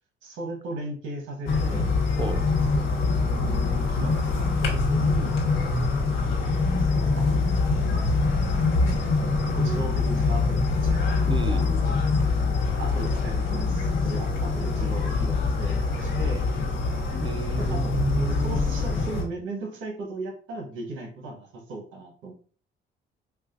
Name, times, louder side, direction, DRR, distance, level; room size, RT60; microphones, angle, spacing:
voice 1, 0.2-1.9 2.6-5.4 7.1-7.8 9.5-11.9 12.8-16.5 17.6-17.8 18.2-22.3, right 2 dB, 85° right, 2 dB, 1.1 m, -37 dB
sound 1, 1.5-19.2, left 3 dB, 80° left, 1.1 m, -24 dB
voice 2, 11.3-11.8 17.2-18.9, right 3 dB, 25° right, 9 dB, 0.4 m, -31 dB
4.6 x 2.4 x 2.5 m, 0.43 s
cardioid pair, 90°, 20 cm